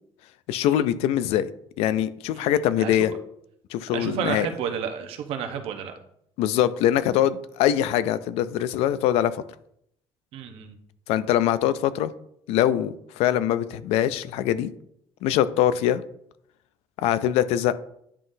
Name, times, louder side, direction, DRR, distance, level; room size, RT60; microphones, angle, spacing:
voice 1, 0.5-1.5 1.8-3.1 3.7-4.5 6.4-9.3 11.1-12.1 12.5-14.7 15.2-16.0 17.0-17.7, left 11 dB, 85° left, 15 dB, 0.4 m, -23 dB
voice 2, 3.9-5.9 10.3-10.7, right 8 dB, 70° right, 6 dB, 0.8 m, -31 dB
9.7 x 3.7 x 2.6 m, 0.72 s
cardioid pair, 160°, 10 cm